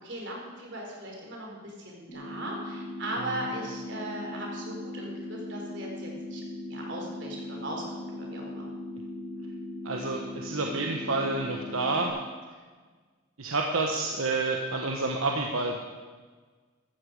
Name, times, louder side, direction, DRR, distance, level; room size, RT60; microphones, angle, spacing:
voice 1, 0.0-6.4 6.7-8.7, right 1 dB, 55° right, -1 dB, 3.9 m, -38 dB
sound 1, 2.1-12.1, left 1 dB, 35° left, 4.5 m, -39 dB
voice 2, 9.8-12.1 13.4-15.8, right 3 dB, 85° right, 1 dB, 1.3 m, -29 dB
15.5 x 13.5 x 4.9 m, 1.4 s
head